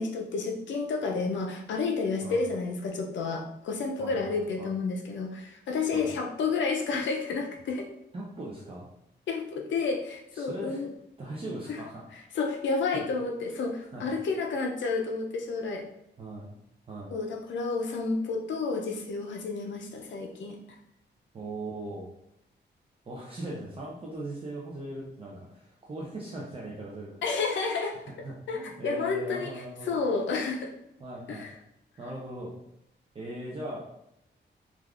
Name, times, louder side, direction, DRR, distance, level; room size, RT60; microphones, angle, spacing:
voice 1, 0.0-7.9 9.3-10.9 11.7-11.8 12.3-15.8 17.1-20.6 27.2-28.0 28.5-30.7 31.3-31.5, left 4 dB, 80° left, 2 dB, 0.4 m, -30 dB
voice 2, 4.0-4.7 5.9-6.1 8.1-8.9 10.3-10.8 11.2-12.0 12.9-13.0 13.9-14.1 16.2-16.5 16.9-17.1 21.3-22.1 23.1-27.1 28.2-30.0 31.0-31.5 32.0-32.5 33.1-33.9, right 1 dB, 30° right, -4 dB, 0.4 m, -39 dB
3.3 x 2.4 x 2.3 m, 0.82 s
wide cardioid pair, 180°, 19 cm